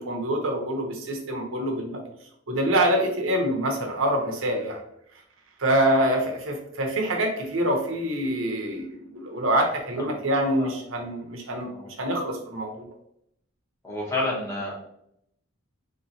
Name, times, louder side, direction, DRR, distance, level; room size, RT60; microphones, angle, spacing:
voice 1, 0.0-2.0 2.5-4.8 5.6-12.8, right 1 dB, 75° right, 2 dB, 0.8 m, -25 dB
voice 2, 13.8-14.7, left 2 dB, 15° left, -5 dB, 0.9 m, -30 dB
3.5 x 3.0 x 2.7 m, 0.75 s
head